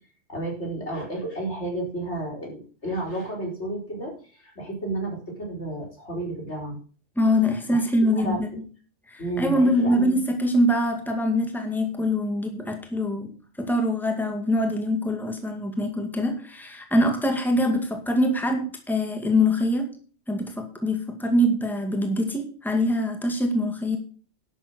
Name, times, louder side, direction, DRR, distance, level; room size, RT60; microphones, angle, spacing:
voice 1, 0.3-6.8 7.7-7.8 8.2-8.4 9.2-10.1, right 2 dB, 70° left, 0 dB, 4.7 m, -32 dB
voice 2, 7.2-8.5 9.1-13.3 13.6-19.9 20.3-24.0, left 1 dB, ahead, 4 dB, 2.1 m, -24 dB
11.5 x 7.7 x 6.4 m, 0.41 s
omnidirectional pair, 1.2 m